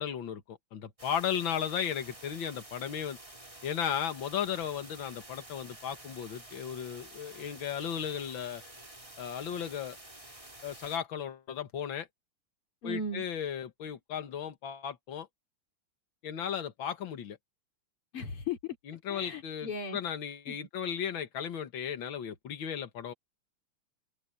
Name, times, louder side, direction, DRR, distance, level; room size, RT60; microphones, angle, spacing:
voice 1, 0.0-3.2 3.6-8.6 9.2-10.0 10.6-12.1 12.8-15.3 16.2-17.4 18.9-23.1, left 8 dB, 65° left, 2.2 m, -35 dB
sound 1, 1.0-11.0, right 1 dB, 15° right, 3.8 m, -50 dB
voice 2, 12.8-13.2 18.1-18.6 19.1-20.0 20.5-20.6, left 2 dB, 90° left, 4.3 m, -36 dB
omnidirectional pair, 2.4 m